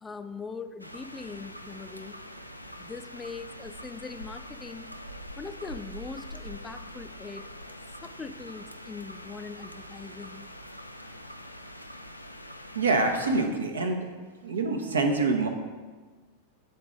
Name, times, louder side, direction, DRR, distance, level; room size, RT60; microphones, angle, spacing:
voice 1, 0.0-2.2 2.8-4.9 5.4-7.7 8.0-10.5, left 4 dB, 15° left, 9 dB, 0.4 m, -41 dB
sound 1, 0.8-13.5, equal, 90° left, 0.3 m, -44 dB
voice 2, 12.7-14.1 14.4-15.5, right 3 dB, 70° right, 5 dB, 0.8 m, -25 dB
9.2 x 3.9 x 3.7 m, 1.4 s
figure-of-eight pair, 90°, 0 cm